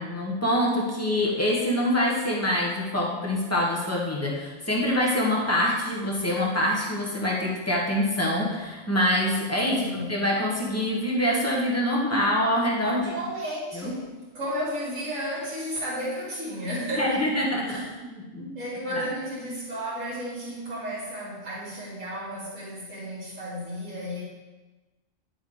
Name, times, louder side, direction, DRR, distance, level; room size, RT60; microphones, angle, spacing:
voice 1, 0.0-13.1 13.7-13.9 17.0-18.6, left 1 dB, 10° left, -3 dB, 1.4 m, -25 dB
voice 2, 9.7-10.1 13.0-17.2 17.7-17.9 18.5-24.2, equal, 85° right, -10 dB, 2.7 m, -33 dB
10.5 x 6.3 x 3.4 m, 1.2 s
omnidirectional pair, 1.3 m